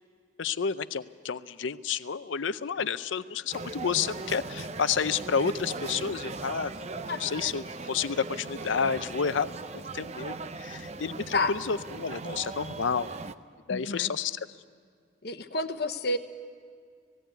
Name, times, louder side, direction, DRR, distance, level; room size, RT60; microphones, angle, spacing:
voice 1, 0.4-6.7 7.2-9.6 9.9-10.3 10.6-13.1 13.7-14.4, left 6 dB, 80° left, 14 dB, 0.6 m, -30 dB
sound 1, 3.5-13.3, right 3 dB, 35° right, 0.5 m, -39 dB
voice 2, 13.7-14.1 15.2-16.2, left 2 dB, 55° left, 8 dB, 1.0 m, -29 dB
19.0 x 16.0 x 9.2 m, 2.2 s
head